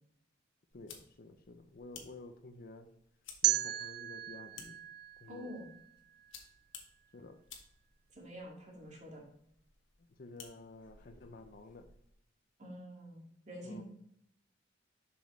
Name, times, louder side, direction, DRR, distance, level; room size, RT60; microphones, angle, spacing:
sound 1, 0.7-12.1, left 6 dB, 80° left, 1.3 m, -57 dB
voice 1, 0.7-2.9 3.4-4.8 5.2-5.5 7.1-7.4 10.0-11.9 13.6-13.8, left 2 dB, 50° left, 8 dB, 0.6 m, -51 dB
sound 2, 3.4-6.4, right 15 dB, 55° right, 0.4 m, -35 dB
voice 2, 5.3-5.7 8.1-9.2 12.6-13.8, equal, 40° right, -1 dB, 2.2 m, -47 dB
7.0 x 6.1 x 3.2 m, 0.71 s
head